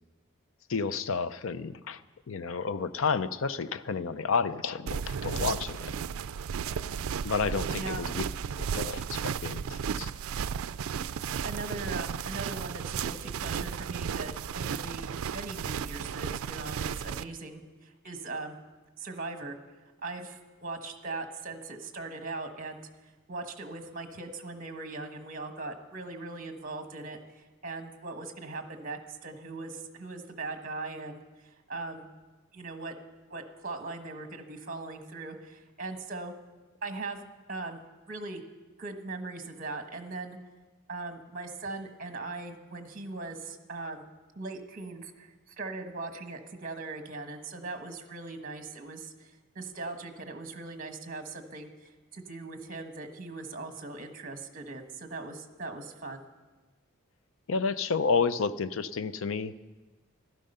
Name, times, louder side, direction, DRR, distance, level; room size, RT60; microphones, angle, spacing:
voice 1, 0.7-2.0 2.3-6.0 7.2-8.2 8.6-10.1 57.5-59.5, left 5 dB, 70° left, 14 dB, 0.5 m, -30 dB
sound 1, 4.9-17.2, right 7 dB, 85° right, 0.4 m, -34 dB
voice 2, 7.7-8.1 11.2-18.6 19.0-19.6 20.0-22.9 23.3-32.1 32.5-32.9 33.3-36.3 36.8-37.8 38.1-38.4 38.8-40.4 40.9-44.1 44.3-56.2, right 3 dB, 40° right, 6 dB, 1.3 m, -40 dB
14.0 x 12.0 x 5.5 m, 1.2 s
head